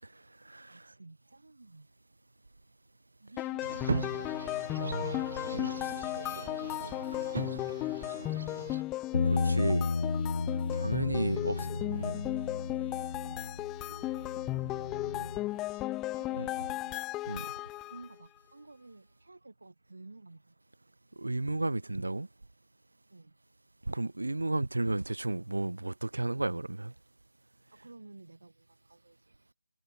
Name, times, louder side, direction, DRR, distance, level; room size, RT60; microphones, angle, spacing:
voice 1, 0.7-1.9 3.2-4.1 5.4-6.0 6.4-7.0 7.4-8.7 11.3-12.0 13.2-17.1 17.9-20.6 23.1-23.3 27.7-29.5, right 2 dB, 70° right, 7.2 m, -53 dB
sound 1, 3.4-18.1, left 17 dB, 10° left, 0.7 m, -35 dB
sound 2, 3.6-8.8, right 4 dB, 45° right, 1.7 m, -39 dB
voice 2, 4.8-5.7 9.2-9.9 10.7-11.5 12.0-12.2 16.4-16.5 17.3-17.5 21.2-22.3 23.9-26.9, right 2 dB, 90° right, 1.2 m, -33 dB
Bass guitar, 9.1-15.4, left 4 dB, 50° left, 0.5 m, -33 dB
figure-of-eight pair, 170°, 0 cm